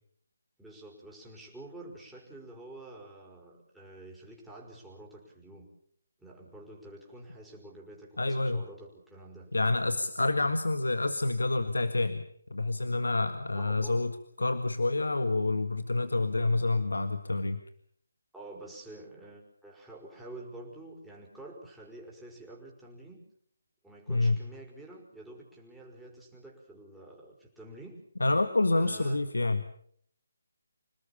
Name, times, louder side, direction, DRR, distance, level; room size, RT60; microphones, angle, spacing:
voice 1, 0.6-5.7 6.2-9.5 13.5-14.0 18.3-23.2 23.8-28.0 28.7-29.2, right 2 dB, ahead, -4 dB, 5.2 m, -48 dB
voice 2, 8.2-8.7 9.5-12.3 12.5-17.6 24.1-24.4 28.2-29.6, left 2 dB, 75° left, 9 dB, 1.8 m, -28 dB
27.0 x 19.0 x 7.1 m, 0.64 s
figure-of-eight pair, 150°, 0 cm